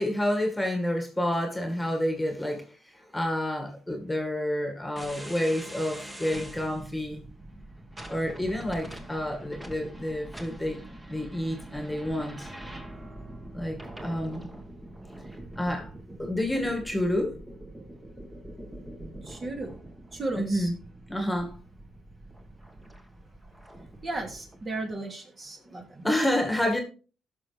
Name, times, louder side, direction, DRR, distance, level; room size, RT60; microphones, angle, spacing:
voice 1, 0.0-7.2 8.1-10.8 11.1-12.5 13.5-14.5 15.6-15.9 16.2-17.4 20.4-20.8 21.1-21.5 26.0-26.8, left 1 dB, 5° left, 1.9 m, -29 dB
sound 1, 5.0-24.7, right 1 dB, 15° right, 1.5 m, -44 dB
voice 2, 19.2-19.8 20.1-20.7 24.0-26.1, right 2 dB, 35° right, 2.4 m, -35 dB
15.0 x 6.2 x 3.3 m
cardioid pair, 90°, 0 cm